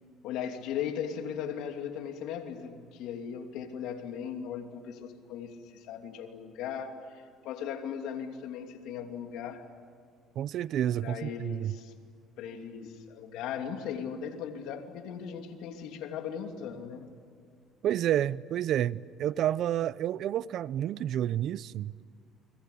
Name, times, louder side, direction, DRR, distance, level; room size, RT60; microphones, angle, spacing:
voice 1, 0.2-9.6 11.0-11.9 12.4-17.1, left 8 dB, 80° left, 2.9 m, -38 dB
voice 2, 10.4-11.7 17.8-21.9, right 11 dB, 60° right, 0.6 m, -30 dB
29.5 x 22.0 x 8.6 m
cardioid pair, 110°, 0 cm